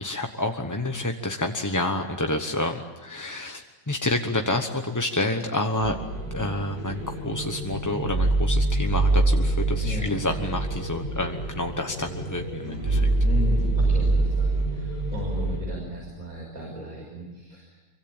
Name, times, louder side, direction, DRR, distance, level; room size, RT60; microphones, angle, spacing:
voice 1, 0.0-6.0 6.3-13.1, left 2 dB, 15° left, 4 dB, 0.9 m, -29 dB
sound 1, 5.8-15.6, right 2 dB, 75° right, 7.3 m, -25 dB
voice 2, 13.2-17.8, left 3 dB, 50° right, -1 dB, 6.6 m, -35 dB
26.0 x 24.0 x 8.9 m, 1.2 s
omnidirectional pair, 1.9 m